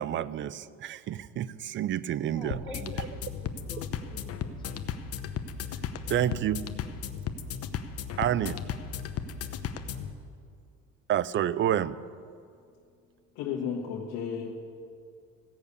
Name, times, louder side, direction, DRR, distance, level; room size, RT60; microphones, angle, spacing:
voice 1, 0.0-3.1 6.1-6.7 8.2-8.6 11.1-12.0, right 11 dB, 40° right, 18 dB, 0.4 m, -29 dB
voice 2, 2.3-3.1 3.3-4.8, left 2 dB, 15° left, 1 dB, 2.0 m, -46 dB
sound 1, 2.5-10.1, left 7 dB, 50° left, 0.9 m, -35 dB
voice 3, 13.3-14.5, left 7 dB, 70° left, -1 dB, 1.5 m, -33 dB
15.5 x 6.7 x 8.5 m, 2.4 s
cardioid pair, 110°, 32 cm